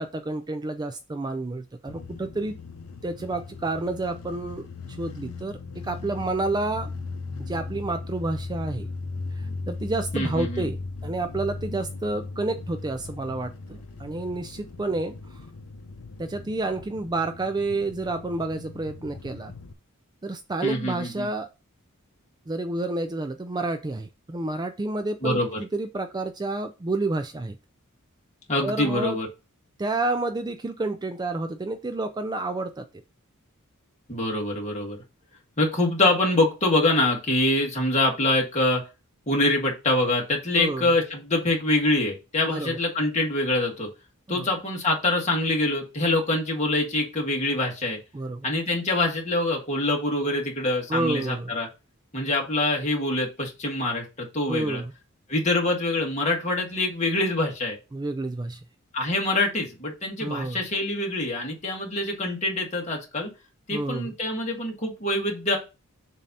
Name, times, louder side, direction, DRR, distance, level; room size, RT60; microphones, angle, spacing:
voice 1, 0.0-2.6 3.0-4.7 5.0-5.6 5.8-6.9 7.4-8.9 9.4-10.8 11.0-15.1 16.2-19.5 20.2-21.5 22.5-27.6 28.6-29.2 29.8-32.9 40.6-40.9 42.4-42.8 44.3-44.5 48.1-48.5 50.9-51.5 54.5-54.9 57.9-58.6 60.2-60.6 63.7-64.1, right 2 dB, 20° right, 0.4 m, -29 dB
sound 1, 1.9-19.7, left 3 dB, 85° left, 0.7 m, -38 dB
voice 2, 10.1-10.6 20.6-21.3 25.2-25.6 28.5-29.3 34.1-35.0 35.6-38.8 39.3-43.9 44.3-48.0 48.4-51.7 52.1-54.8 55.3-57.8 58.9-63.3 63.7-65.6, left 2 dB, 30° left, 1.7 m, -25 dB
7.2 x 2.8 x 5.3 m
head